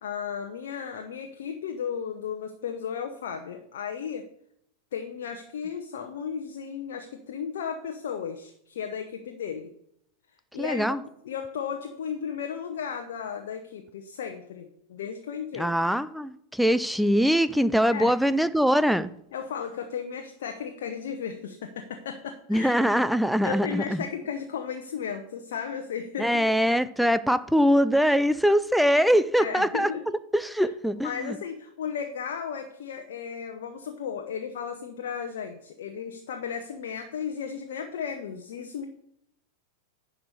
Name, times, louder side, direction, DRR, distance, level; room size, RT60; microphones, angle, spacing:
voice 1, 0.0-4.3 4.9-9.7 10.5-11.0 11.2-15.7 17.9-18.1 19.3-22.8 23.4-26.5 29.4-30.0 31.0-38.8, left 7 dB, 60° left, 4 dB, 1.0 m, -35 dB
voice 2, 10.6-11.0 15.5-19.1 22.5-24.0 26.2-29.9 30.3-31.4, equal, ahead, 14 dB, 0.5 m, -23 dB
10.5 x 5.0 x 6.6 m, 0.71 s
figure-of-eight pair, 90°, 0 cm